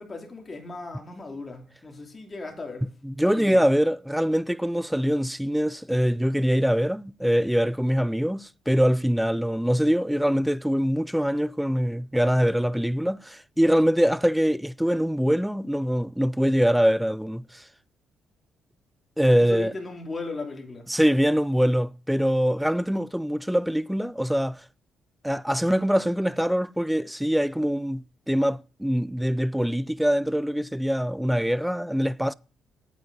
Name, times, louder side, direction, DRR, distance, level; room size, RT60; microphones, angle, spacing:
voice 1, 0.0-2.9 3.2-3.6 19.4-20.9, left 3 dB, 25° left, 3.0 m, -37 dB
voice 2, 3.0-17.6 19.2-19.7 20.9-24.6 25.2-32.3, equal, 5° right, 0.4 m, -23 dB
8.8 x 8.3 x 5.3 m
cardioid pair, 90°, 0 cm